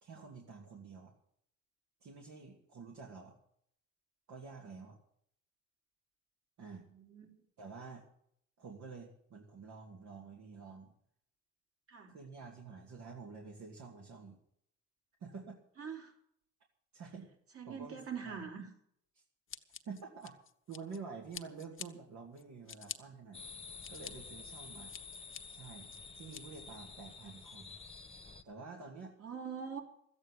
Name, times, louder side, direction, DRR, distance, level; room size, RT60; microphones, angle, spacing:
voice 1, 0.0-1.1 2.0-3.3 4.3-5.0 6.6-6.9 7.6-8.0 8.6-10.9 12.1-14.4 15.2-15.6 16.9-17.3 17.6-18.4 19.1-19.2 19.8-20.4 20.7-23.5 23.9-24.9 25.5-27.8 28.4-29.1, right 4 dB, 70° right, 0 dB, 2.5 m, -49 dB
voice 2, 6.9-7.3 11.9-12.1 15.8-16.1 17.5-18.7 29.2-29.8, right 6 dB, 50° right, 3 dB, 3.3 m, -43 dB
Scissors, 19.5-21.0 21.3-21.9 22.4-23.0 23.5-24.1 24.6-25.4 25.9-26.4, left 8 dB, 45° left, 1.0 m, -47 dB
sound 1, 23.3-28.4, left 4 dB, 20° left, 1.2 m, -50 dB
13.5 x 8.8 x 8.2 m, 0.69 s
cardioid pair, 90°, 30 cm